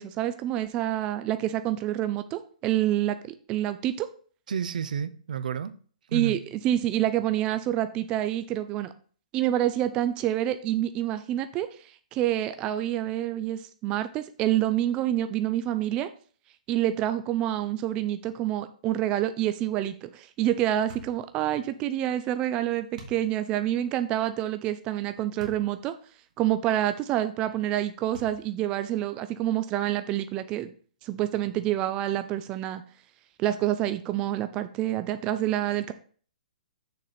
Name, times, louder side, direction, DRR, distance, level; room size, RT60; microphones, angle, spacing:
voice 1, 0.0-3.2 3.5-4.1 6.1-8.9 9.3-16.1 16.7-25.9 26.4-30.7 31.0-32.8 33.4-35.9, right 12 dB, 20° right, 0.3 m, -27 dB
voice 2, 4.5-5.7 6.1-6.4, right 7 dB, 75° right, 0.6 m, -30 dB
sound 1, 20.9-21.2 23.0-23.2 25.4-25.7 26.3-26.4 28.1-28.6, right 2 dB, 55° right, 1.8 m, -44 dB
6.5 x 4.2 x 4.9 m
hypercardioid pair, 160°, 4 cm